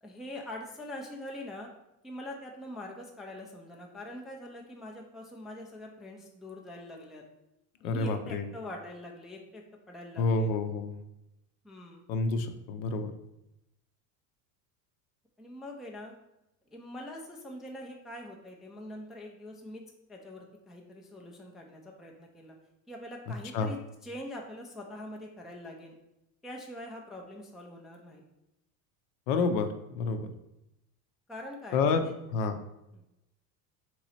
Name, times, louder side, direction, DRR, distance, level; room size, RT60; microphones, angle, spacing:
voice 1, 0.0-1.7 2.0-7.2 7.8-10.5 11.6-12.0 15.4-16.1 16.7-19.8 20.1-22.5 22.9-25.9 26.4-28.2 31.3-32.1 32.9-33.0, left 1 dB, ahead, 0 dB, 0.3 m, -44 dB
voice 2, 7.8-8.5 10.2-11.0 12.1-13.1 23.5-23.7 29.3-29.7 29.9-30.3 31.7-32.0 32.3-32.6, left 4 dB, 70° left, 8 dB, 0.7 m, -28 dB
3.8 x 3.0 x 4.1 m, 0.89 s
supercardioid pair, 115°, 42 cm